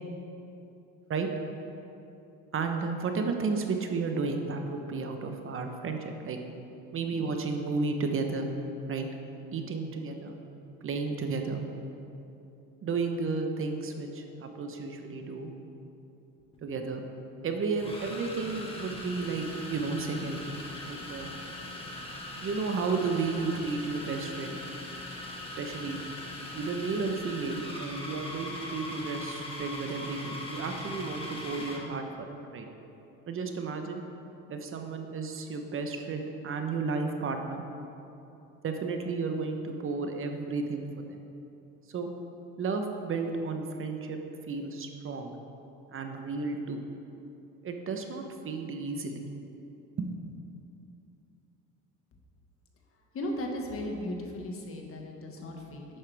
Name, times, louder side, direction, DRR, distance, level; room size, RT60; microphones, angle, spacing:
voice 1, 2.5-6.4 6.9-8.5 8.9-9.1 9.5-10.4 10.8-11.6 12.8-15.5 16.6-17.0 17.4-20.5 20.8-21.3 22.4-24.6 25.6-26.0 26.5-32.7 33.3-34.0 34.5-37.6 38.6-41.2 41.9-42.1 42.6-44.2 44.5-45.3 45.9-46.8 47.6-49.3 50.0-50.1, right 4 dB, 40° right, 4 dB, 1.0 m, -33 dB
sound 1, 16.4-16.6 17.7-31.9, left 1 dB, 15° left, 1.7 m, -40 dB
voice 2, 53.1-56.0, left 1 dB, 40° left, 1 dB, 1.6 m, -36 dB
11.0 x 8.6 x 3.5 m, 2.9 s
supercardioid pair, 95°, 32 cm